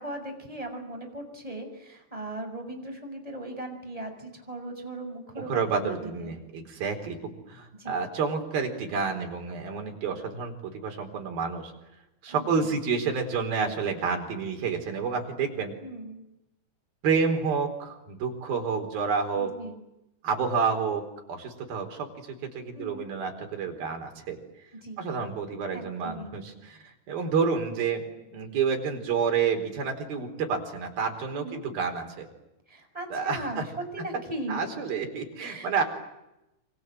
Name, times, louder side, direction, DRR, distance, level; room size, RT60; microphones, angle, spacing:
voice 1, 0.0-6.3 7.7-8.0 12.3-12.7 15.8-16.2 19.3-19.8 22.7-23.1 24.8-25.1 25.7-26.3 31.3-31.6 32.7-35.0 35.4-35.8, right 1 dB, 10° right, 4 dB, 6.4 m, -38 dB
voice 2, 5.4-11.7 12.2-15.7 17.0-19.5 20.2-21.0 21.3-24.4 25.0-28.0 28.3-32.3 33.1-33.6 34.5-35.8, right 5 dB, 60° right, 4 dB, 5.9 m, -29 dB
29.0 x 26.0 x 7.7 m, 0.91 s
omnidirectional pair, 4.9 m